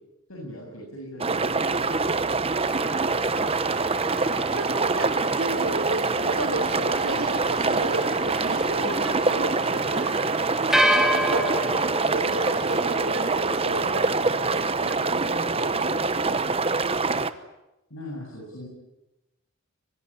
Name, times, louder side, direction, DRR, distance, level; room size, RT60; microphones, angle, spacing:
voice 1, 0.3-1.6 17.9-18.7, left 1 dB, 75° left, -2 dB, 7.6 m, -39 dB
sound 1, 1.2-17.3, right 3 dB, 25° right, 1.1 m, -25 dB
sound 2, 2.7-13.8, right 1 dB, ahead, 2.4 m, -31 dB
voice 2, 4.5-10.1 11.1-11.7 12.1-16.6, right 2 dB, 85° right, -5 dB, 5.0 m, -33 dB
24.5 x 22.0 x 10.0 m, 0.94 s
head